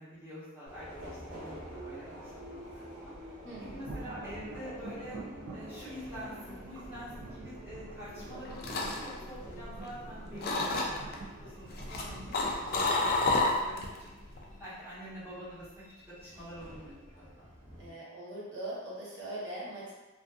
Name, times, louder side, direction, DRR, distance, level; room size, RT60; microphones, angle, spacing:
voice 1, 0.0-3.4 3.7-5.2 5.5-15.8 16.2-17.5, equal, 10° right, -12 dB, 1.0 m, -47 dB
Subway metro underground, 0.7-17.9, equal, 35° right, 0.9 m, -49 dB
voice 2, 3.4-3.8 17.8-19.9, right 1 dB, 60° right, -7 dB, 0.9 m, -41 dB
sound 1, 3.5-12.4, right 2 dB, 80° right, 0.4 m, -47 dB
sound 2, 8.2-10.1 10.4-11.1 11.7-14.0 14.3-14.6, left 2 dB, 45° left, 0.3 m, -30 dB
2.5 x 2.5 x 2.3 m, 1.1 s
head